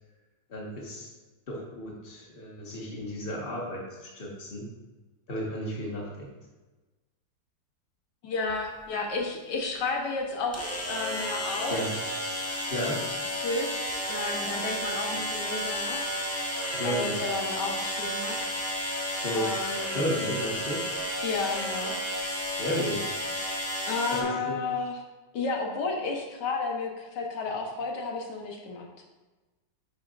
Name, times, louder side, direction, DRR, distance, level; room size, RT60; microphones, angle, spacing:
voice 1, 0.5-1.1 1.5-4.7 5.3-6.3 11.7-11.9 12.7-13.0 16.7-17.2 19.2-19.5 19.9-20.9 22.5-23.2 24.1-24.6, equal, 35° left, -3 dB, 1.6 m, -33 dB
voice 2, 8.2-11.8 13.3-16.1 16.8-18.5 19.3-20.0 21.2-22.0 23.9-25.0 25.3-28.9, left 3 dB, 90° left, 1 dB, 1.7 m, -32 dB
sound 1, 8.5-8.6 10.5-24.2, equal, 10° left, 1.0 m, -32 dB
11.0 x 5.5 x 2.5 m, 1.2 s
omnidirectional pair, 1.8 m